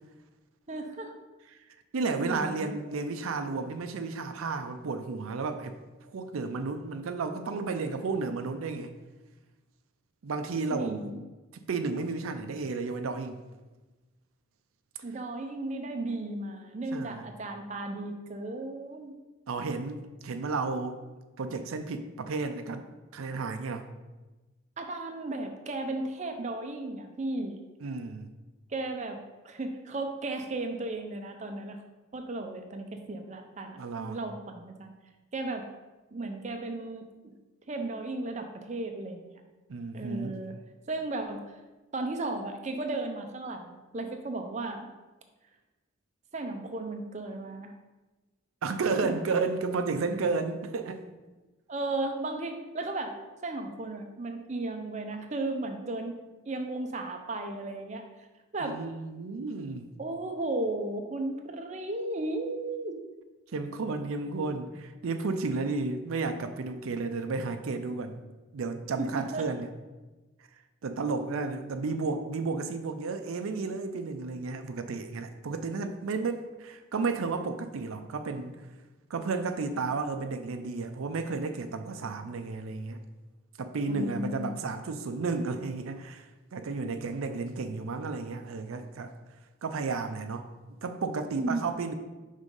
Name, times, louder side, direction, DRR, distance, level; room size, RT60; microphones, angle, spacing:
voice 1, 0.7-1.1 2.2-3.0 10.7-11.2 15.0-19.1 24.8-27.6 28.7-31.8 32.1-34.9 35.3-35.7 36.1-37.3 37.7-39.4 39.9-40.5 40.9-41.4 41.9-44.9 46.3-47.7 48.9-49.1 51.7-53.2 53.4-56.2 56.5-58.0 58.5-58.8 60.0-63.0 69.0-69.5 83.9-84.6 91.3-91.8, right 2 dB, 35° right, 5 dB, 0.5 m, -35 dB
voice 2, 1.9-5.7 6.1-8.9 10.2-11.1 11.5-13.4 16.9-17.3 19.5-21.0 21.4-22.8 23.1-23.8 27.8-28.3 33.8-34.2 39.7-40.4 48.6-51.0 58.6-59.9 63.5-68.2 68.5-69.7 70.8-78.5 79.1-83.0 83.6-89.1 89.6-90.5 90.8-91.9, right 4 dB, 90° right, 8 dB, 0.5 m, -32 dB
5.3 x 3.6 x 5.2 m, 1.2 s
head